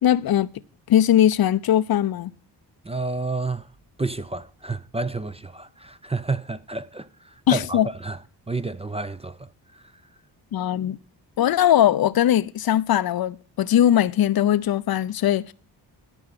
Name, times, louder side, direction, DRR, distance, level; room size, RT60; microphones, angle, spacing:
voice 1, 0.0-0.5 0.9-2.3 7.5-7.9 10.5-11.0 11.4-15.5, left 11 dB, 45° left, 0.6 m, -20 dB
voice 2, 2.8-3.7 4.0-8.2 8.5-9.9, right 3 dB, 15° right, 0.5 m, -30 dB
13.0 x 5.5 x 7.8 m
hypercardioid pair, 40°, 50 cm